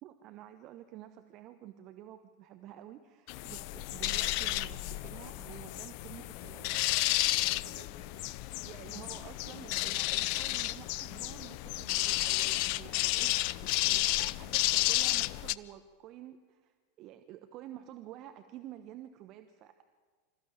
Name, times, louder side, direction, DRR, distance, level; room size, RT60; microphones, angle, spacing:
voice 1, 0.0-6.8 8.6-13.3 13.6-19.8, right 12 dB, 40° right, 9 dB, 1.1 m, -50 dB
sound 1, 3.3-15.5, left 17 dB, 50° left, 0.6 m, -32 dB
voice 2, 7.3-8.7, right 4 dB, 65° right, 3 dB, 3.5 m, -56 dB
26.0 x 14.5 x 9.0 m, 1.6 s
figure-of-eight pair, 85°, 0 cm